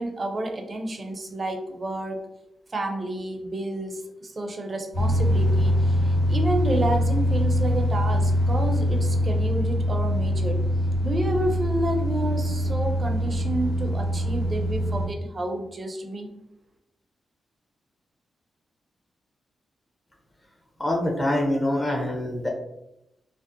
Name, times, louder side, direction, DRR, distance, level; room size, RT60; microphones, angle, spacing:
voice 1, 0.0-2.2 2.7-10.6 11.0-16.3, right 1 dB, 40° right, 3 dB, 0.5 m, -30 dB
sound 1, 4.9-15.1, equal, 80° left, 1.3 m, -23 dB
voice 2, 20.8-22.5, left 1 dB, 30° left, 0 dB, 0.7 m, -25 dB
2.6 x 2.1 x 2.5 m, 0.84 s
cardioid pair, 60°, 0 cm